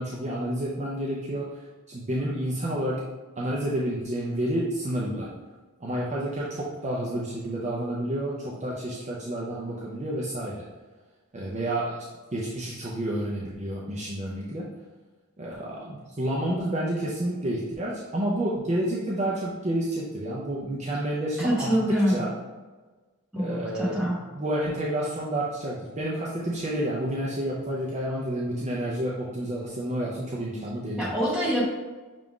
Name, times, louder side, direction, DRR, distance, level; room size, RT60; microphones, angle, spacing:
voice 1, 0.0-1.5 1.9-3.0 3.4-5.3 5.8-10.7 11.3-12.0 12.3-14.7 15.4-22.3 23.3-31.2, right 1 dB, 30° right, -5 dB, 0.5 m, -30 dB
voice 2, 21.4-22.2 23.3-24.2 31.0-31.6, equal, 5° right, -7 dB, 1.3 m, -25 dB
5.7 x 2.5 x 3.6 m, 1.3 s
head